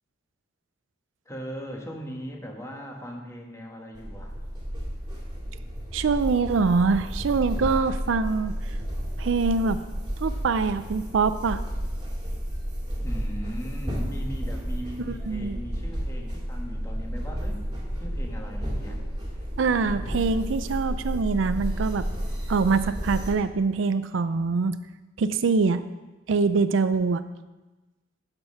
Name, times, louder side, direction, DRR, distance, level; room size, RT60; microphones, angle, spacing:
voice 1, 1.2-4.3 13.0-17.6 17.9-19.0 19.3-19.5, equal, 15° left, 0 dB, 1.4 m, -39 dB
sound 1, 4.0-23.3, equal, 25° right, 2.2 m, -32 dB
voice 2, 5.9-8.5 9.2-9.8 10.2-11.6 15.3-15.6 19.6-22.1 22.5-24.8 25.2-25.8 26.3-27.2, right 4 dB, 80° right, 12 dB, 0.4 m, -24 dB
11.5 x 5.3 x 5.5 m, 1.1 s
head